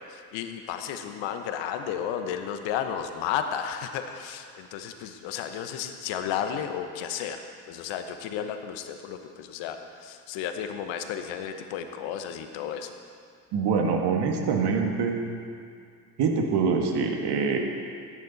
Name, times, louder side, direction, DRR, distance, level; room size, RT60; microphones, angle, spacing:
voice 1, 0.1-12.9, left 8 dB, 65° left, 7 dB, 1.2 m, -33 dB
voice 2, 13.5-15.2 16.2-17.6, right 5 dB, 55° right, 2 dB, 1.8 m, -24 dB
15.0 x 10.0 x 4.1 m, 2.4 s
supercardioid pair, 85°, 47 cm